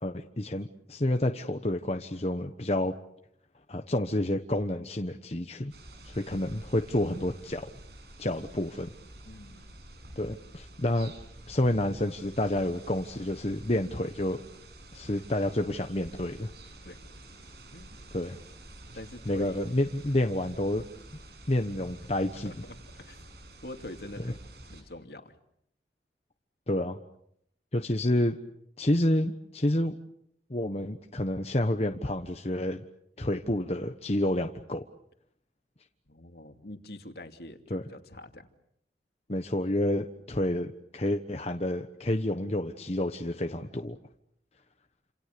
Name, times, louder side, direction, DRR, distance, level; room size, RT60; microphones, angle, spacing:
voice 1, 0.0-2.9 3.7-5.7 6.0-7.7 8.2-8.9 10.2-11.1 11.5-14.4 14.9-16.5 18.1-18.4 19.3-20.8 21.5-22.5 26.7-27.0 27.7-28.4 28.8-30.0 30.5-32.8 33.2-34.8 37.7-37.8 39.3-44.0, left 1 dB, 35° left, 6 dB, 1.2 m, -29 dB
sound 1, 5.7-24.8, right 1 dB, 65° right, 7.0 m, -49 dB
voice 2, 9.2-9.6 15.1-15.3 16.8-17.0 17.7-18.0 18.9-19.7 22.4-23.2 23.6-24.4 24.7-25.4 27.8-27.9 36.1-38.5, left 1 dB, 65° left, 6 dB, 2.6 m, -45 dB
29.5 x 27.5 x 6.9 m, 0.74 s
head